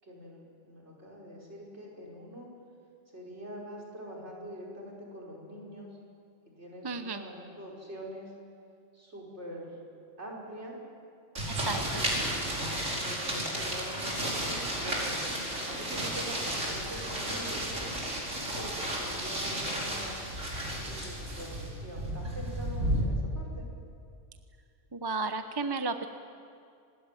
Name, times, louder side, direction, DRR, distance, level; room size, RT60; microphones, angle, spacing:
voice 1, 0.0-2.5 3.1-5.9 6.6-8.3 8.9-9.8 10.2-10.8 11.7-12.8 13.0-15.1 15.7-18.2 18.5-20.3 20.9-23.7, equal, 60° right, -1 dB, 5.7 m, -44 dB
voice 2, 6.8-7.2 11.5-11.8 12.2-12.3 24.9-26.1, right 4 dB, 20° right, 8 dB, 0.9 m, -33 dB
sound 1, 11.4-23.0, right 1 dB, 80° right, 5.6 m, -33 dB
26.0 x 20.0 x 9.1 m, 2.4 s
omnidirectional pair, 1.3 m